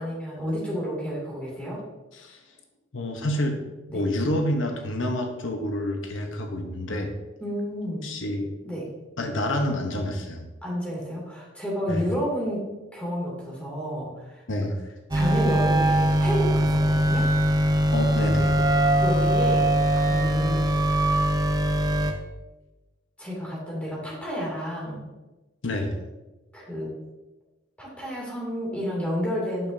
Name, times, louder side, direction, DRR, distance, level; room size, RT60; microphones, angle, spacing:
voice 1, 0.0-1.8 3.9-4.0 7.4-8.1 8.6-8.9 10.6-12.6 12.9-14.4 15.1-17.3 19.0-19.7 19.9-20.7 23.2-25.0 26.5-26.9 27.8-29.7, equal, 5° left, -5 dB, 2.6 m, -30 dB
voice 2, 2.9-3.6 3.9-7.1 8.0-8.5 9.2-10.5 11.9-12.0 14.5-14.8 17.9-18.5 25.6-25.9, left 1 dB, 90° left, 4 dB, 0.9 m, -28 dB
sound 1, 15.1-22.1, right 1 dB, 20° right, 0.7 m, -21 dB
9.0 x 6.6 x 2.7 m, 1.1 s
head